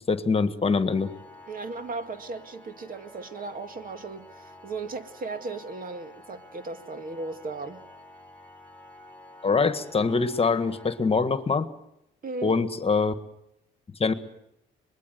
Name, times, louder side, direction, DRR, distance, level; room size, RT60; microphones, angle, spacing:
voice 1, 0.1-1.1 9.4-11.7 12.4-13.1 14.0-14.1, left 4 dB, 30° left, 1.7 m, -24 dB
Organ, 0.8-11.8, left 1 dB, 5° left, 4.9 m, -50 dB
voice 2, 1.5-7.8 12.2-12.6, right 3 dB, 45° right, 2.1 m, -36 dB
25.0 x 21.0 x 7.9 m
cardioid pair, 90°, 20 cm